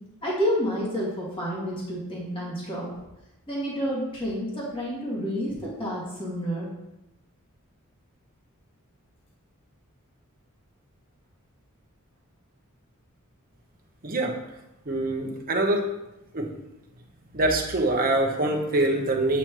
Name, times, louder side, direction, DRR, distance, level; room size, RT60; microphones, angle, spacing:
voice 1, 0.2-2.9 3.5-6.7, equal, 25° left, -6 dB, 2.1 m, -29 dB
voice 2, 14.0-14.4 14.9-16.0 16.3-16.5 17.3-19.4, right 2 dB, 40° right, 1 dB, 1.1 m, -24 dB
8.5 x 6.0 x 3.1 m, 0.93 s
head